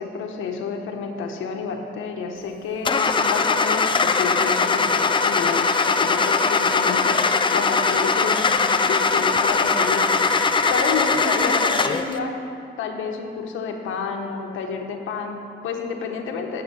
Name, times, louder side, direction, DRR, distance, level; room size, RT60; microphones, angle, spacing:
voice 1, 0.0-7.2 7.5-10.1 10.6-12.3 12.8-16.6, left 5 dB, 85° left, 3 dB, 1.2 m, -29 dB
Car / Engine starting, 2.8-12.1, left 4 dB, 25° left, 0.6 m, -20 dB
8.7 x 6.6 x 8.0 m, 2.6 s
cardioid pair, 90°, 20 cm